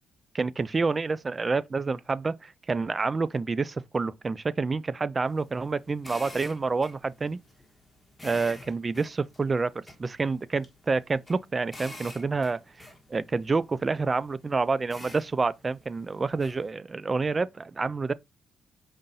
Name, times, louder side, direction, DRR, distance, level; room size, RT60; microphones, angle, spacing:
voice 1, 0.3-7.4 8.2-12.6 13.1-18.1, right 4 dB, 30° right, 0.3 m, -28 dB
sound 1, 5.2-16.7, left 1 dB, 15° left, 1.3 m, -49 dB
4.9 x 3.8 x 2.7 m
cardioid pair, 90°, 0 cm